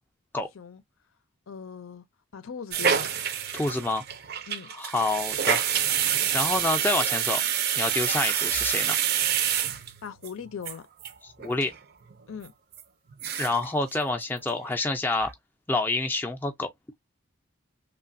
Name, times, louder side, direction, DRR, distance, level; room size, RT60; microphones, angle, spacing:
voice 1, 1.5-2.0 2.3-3.1 4.5-4.7 10.0-10.9 12.3-12.5, left 6 dB, 80° left, 0.6 m, -39 dB
sound 1, 2.7-10.3 10.6-10.7 11.0-11.1 11.4-11.7 12.1-12.2 12.7-12.8 13.1-13.7 13.9-14.0 14.4-14.9 15.2-15.3, right 9 dB, 45° right, 0.4 m, -27 dB
voice 2, 3.5-4.0 4.7-5.7 6.3-7.5 7.8-9.0 11.4-11.7 13.4-15.3 15.7-16.7, left 2 dB, 10° left, 0.4 m, -27 dB
3.2 x 2.2 x 2.5 m
head